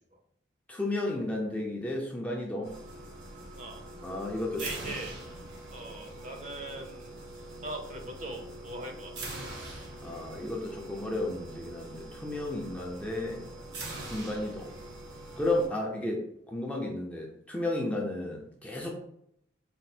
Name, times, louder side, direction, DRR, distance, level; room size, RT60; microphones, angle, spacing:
voice 1, 0.7-2.7 4.0-4.9 9.6-13.5 14.0-14.7 15.4-19.0, left 1 dB, 5° left, -2 dB, 0.5 m, -33 dB
sound 1, 2.6-15.7, right 2 dB, 65° right, 0.9 m, -43 dB
voice 2, 3.5-3.8 4.6-5.1 5.7-7.1 7.6-9.3, right 2 dB, 40° right, 2 dB, 0.6 m, -40 dB
4.2 x 2.0 x 4.2 m, 0.73 s
head